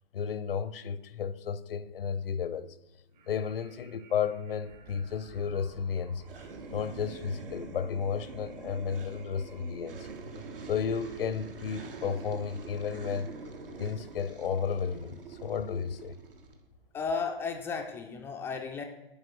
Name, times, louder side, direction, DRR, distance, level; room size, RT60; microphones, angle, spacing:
voice 1, 0.1-2.7 3.3-6.2 6.7-10.1 10.7-13.3 13.8-16.2, left 7 dB, 70° left, 0.7 m, -33 dB
sound 1, 3.1-11.5, right 6 dB, 50° right, 1.6 m, -59 dB
sound 2, 4.7-18.2, right 3 dB, 20° right, 0.8 m, -58 dB
sound 3, 6.2-16.6, right 4 dB, 70° right, 1.5 m, -45 dB
voice 2, 16.9-18.8, left 5 dB, 10° left, 0.3 m, -34 dB
10.5 x 4.6 x 6.1 m
figure-of-eight pair, 120°, 29 cm